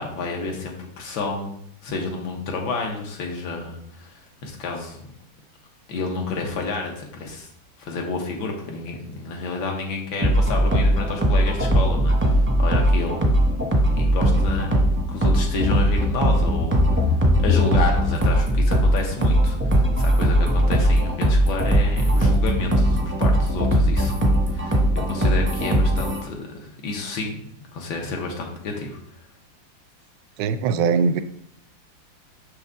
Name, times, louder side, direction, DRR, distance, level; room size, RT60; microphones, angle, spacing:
voice 1, 0.0-5.1 5.9-7.5 7.8-13.3 13.9-14.7 15.1-24.8 25.1-27.5 27.7-29.0, left 3 dB, 80° left, 1 dB, 1.8 m, -30 dB
sound 1, 10.2-26.2, equal, 10° right, 0.6 m, -19 dB
voice 2, 30.4-31.2, right 5 dB, 75° right, 11 dB, 1.1 m, -21 dB
6.4 x 5.4 x 3.5 m, 0.70 s
omnidirectional pair, 2.1 m